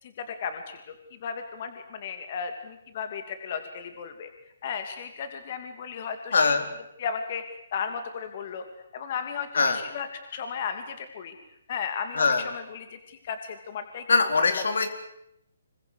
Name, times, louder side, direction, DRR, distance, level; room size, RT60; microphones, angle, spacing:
voice 1, 0.0-4.3 4.6-6.6 7.0-7.4 7.7-8.6 8.9-11.3 11.7-14.0 14.3-14.6, left 6 dB, 40° left, 8 dB, 2.8 m, -35 dB
voice 2, 6.3-6.6 9.5-9.8 12.1-12.4 14.1-14.9, left 4 dB, 75° left, 8 dB, 4.1 m, -22 dB
26.5 x 23.5 x 8.2 m, 0.80 s
hypercardioid pair, 160°, 0 cm